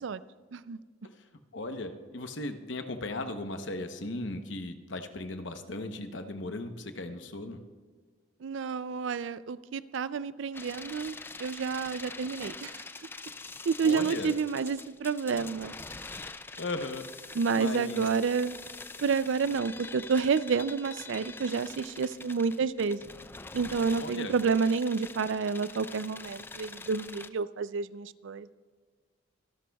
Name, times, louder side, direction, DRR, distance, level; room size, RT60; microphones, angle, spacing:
voice 1, 1.5-7.6 13.8-14.3 16.6-18.0 24.0-24.3, left 2 dB, 65° left, 7 dB, 0.9 m, -37 dB
voice 2, 8.4-12.8 13.7-15.7 17.3-18.6 19.0-23.1 23.5-28.5, right 5 dB, 65° right, 15 dB, 0.4 m, -29 dB
sound 1, 10.5-27.3, left 3 dB, 10° left, 0.3 m, -44 dB
24.5 x 11.5 x 2.3 m, 1.5 s
head